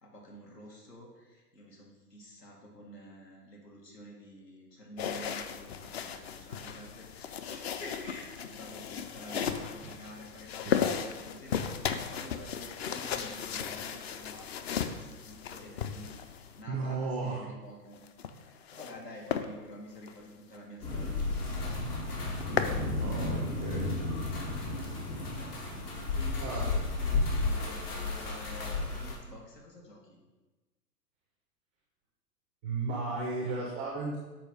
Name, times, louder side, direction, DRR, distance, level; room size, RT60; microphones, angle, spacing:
voice 1, 0.0-16.1 16.6-18.1 18.3-21.7 26.1-30.2, left 1 dB, 90° left, -2 dB, 2.2 m, -49 dB
sound 1, 5.0-16.6 17.9-19.0 19.3-19.5 20.0-20.1 20.5-20.6 20.9-21.0 21.3-21.8 22.1-22.8, left 7 dB, 40° left, 0.5 m, -35 dB
voice 2, 16.7-17.4 23.0-23.9 26.4-26.7 32.6-34.2, right 3 dB, 5° right, -4 dB, 0.3 m, -34 dB
sound 2, 20.8-29.1, left 3 dB, 70° left, 2.4 m, -33 dB
7.5 x 4.5 x 4.8 m, 1.2 s
figure-of-eight pair, 115°, 48 cm